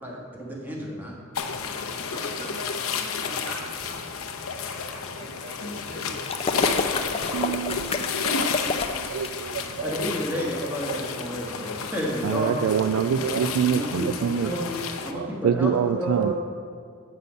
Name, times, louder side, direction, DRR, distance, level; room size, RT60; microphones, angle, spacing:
voice 1, 0.0-1.1 9.8-12.5 13.7-14.1 14.3-16.3, equal, 10° right, -3 dB, 1.4 m, -31 dB
sound 1, 1.4-15.1, left 5 dB, 75° left, 0.7 m, -31 dB
voice 2, 2.1-4.1 4.6-7.8, right 1 dB, 60° right, -2 dB, 1.6 m, -43 dB
sound 2, 6.3-9.3, left 4 dB, 30° left, 0.4 m, -28 dB
voice 3, 7.3-10.0 10.9-11.0 12.2-14.6 15.1-16.3, right 7 dB, 85° right, 11 dB, 0.3 m, -26 dB
8.0 x 5.5 x 5.2 m, 2.3 s
head